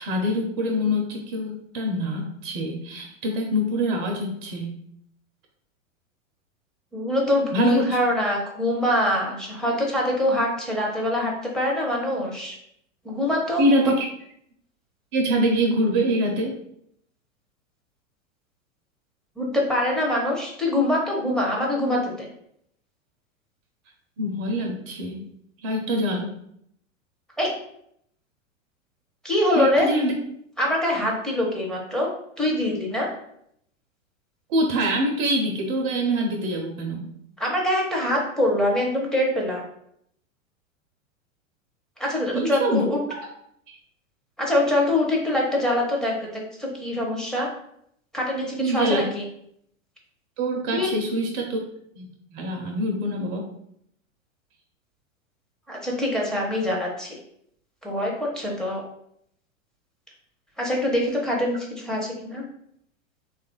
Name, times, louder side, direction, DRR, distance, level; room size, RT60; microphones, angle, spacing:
voice 1, 0.0-4.7 7.5-7.9 13.6-14.1 15.1-16.5 24.2-25.2 25.6-26.3 29.5-30.1 34.5-37.0 42.3-43.2 43.7-43.8 48.6-49.0 50.4-51.6 51.9-53.5, equal, 40° right, 2 dB, 0.6 m, -25 dB
voice 2, 6.9-12.6 13.0-13.9 19.4-22.3 27.4-27.5 29.2-29.9 30.6-32.1 32.4-33.1 37.4-39.6 42.0-43.0 44.4-47.5 48.1-49.2 50.7-50.9 55.7-57.2 57.8-58.8 60.6-62.4, left 1 dB, ahead, -2 dB, 0.7 m, -24 dB
3.2 x 2.4 x 3.7 m, 0.71 s
hypercardioid pair, 100°, 39 cm